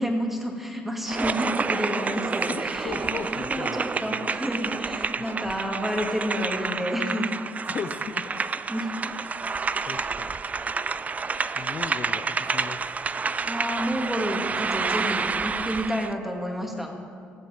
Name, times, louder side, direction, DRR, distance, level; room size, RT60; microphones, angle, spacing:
voice 1, 0.0-7.3 8.7-8.9 13.4-16.9, equal, 5° right, 1 dB, 2.3 m, -30 dB
sound 1, 1.1-16.1, right 4 dB, 30° right, 0.4 m, -29 dB
voice 2, 2.5-4.3 5.4-5.6 7.7-8.5 9.0-9.4 9.9-10.3 11.6-12.9, left 6 dB, 50° left, 8 dB, 0.6 m, -37 dB
18.5 x 7.7 x 5.0 m, 2.4 s
supercardioid pair, 65°, 5 cm